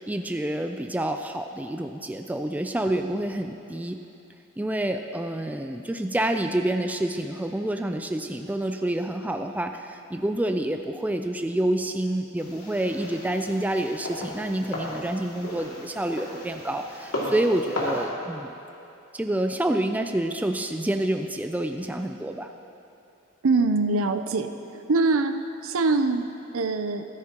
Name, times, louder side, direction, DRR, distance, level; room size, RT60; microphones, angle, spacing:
voice 1, 0.0-4.0 4.6-18.5 19.1-22.5, right 1 dB, 5° right, 6 dB, 0.3 m, -28 dB
sound 1, 12.4-18.0, left 1 dB, 85° left, 2.4 m, -35 dB
voice 2, 23.4-24.5 24.9-25.4 25.6-26.3 26.5-27.0, right 3 dB, 70° right, 8 dB, 0.6 m, -23 dB
14.0 x 13.0 x 2.9 m, 2.9 s
head